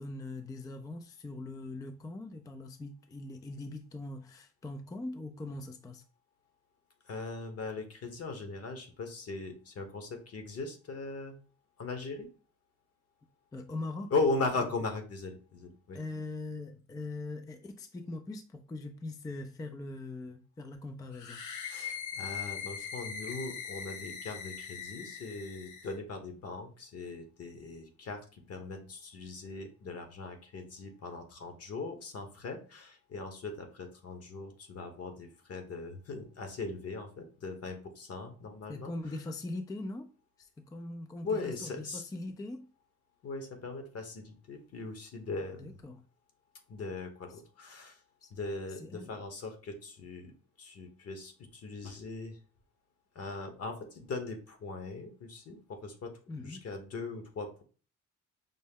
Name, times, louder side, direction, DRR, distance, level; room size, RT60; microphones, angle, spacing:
voice 1, 0.0-6.0 13.5-14.1 15.9-21.4 38.7-40.1 40.4-42.7 45.6-46.0 48.2-48.3 48.7-49.1 56.3-56.7, left 2 dB, 10° left, 0.3 m, -41 dB
voice 2, 7.0-11.4 11.8-12.3 14.1-16.0 21.7-38.9 41.2-42.0 43.2-45.8 46.7-48.0 48.3-50.3 50.6-52.4 53.1-57.6, left 3 dB, 55° left, 1.1 m, -39 dB
sound 1, 21.1-26.0, left 7 dB, 80° left, 0.8 m, -41 dB
5.3 x 2.0 x 3.5 m
cardioid pair, 90°, 30 cm